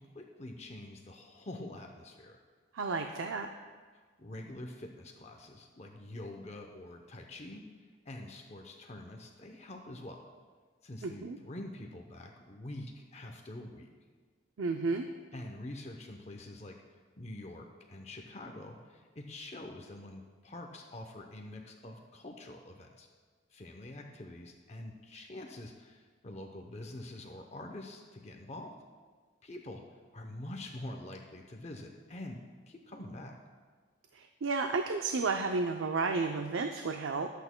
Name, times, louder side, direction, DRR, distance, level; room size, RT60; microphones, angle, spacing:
voice 1, 0.0-2.4 4.2-7.6 8.0-10.3 10.8-13.9 15.3-16.8 17.2-23.1 23.5-28.7 29.4-29.8 30.1-32.4 32.7-33.4, left 1 dB, 30° left, 3 dB, 0.7 m, -46 dB
voice 2, 2.7-3.5 11.0-11.4 14.6-15.1 34.1-37.3, right 4 dB, 75° right, 5 dB, 0.5 m, -32 dB
22.0 x 8.2 x 2.2 m, 1.5 s
head